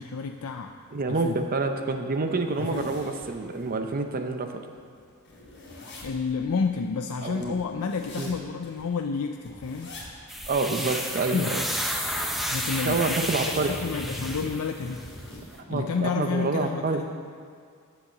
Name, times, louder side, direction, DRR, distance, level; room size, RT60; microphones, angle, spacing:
voice 1, 0.0-0.8 1.1-1.4 2.6-2.9 6.0-10.2 11.3-11.6 12.5-13.2 13.5-15.0 15.7-17.1, left 5 dB, 75° left, 5 dB, 0.5 m, -30 dB
voice 2, 0.9-4.6 7.2-7.6 8.2-8.3 10.5-11.6 12.8-13.7 15.7-17.0, right 3 dB, 40° right, 6 dB, 0.6 m, -27 dB
sound 1, 1.2-1.3 1.7-1.8 2.2-3.8 4.2-4.3 4.5-8.9 9.4-10.1 10.4-10.5 10.9-11.8 12.1-15.5, left 1 dB, 55° left, 2.5 m, -43 dB
sound 2, 10.3-15.0, equal, ahead, 0.8 m, -31 dB
9.6 x 7.4 x 7.2 m, 2.2 s
head